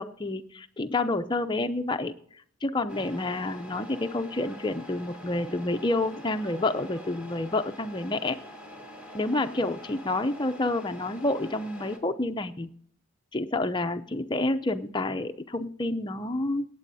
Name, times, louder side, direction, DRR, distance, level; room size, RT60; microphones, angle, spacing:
voice 1, 0.0-2.1 2.6-8.4 9.1-12.7 13.3-16.7, left 2 dB, 20° left, 8 dB, 0.6 m, -29 dB
Truck, 2.9-12.0, left 1 dB, 5° right, 1.7 m, -45 dB
23.5 x 9.0 x 2.7 m, 0.63 s
head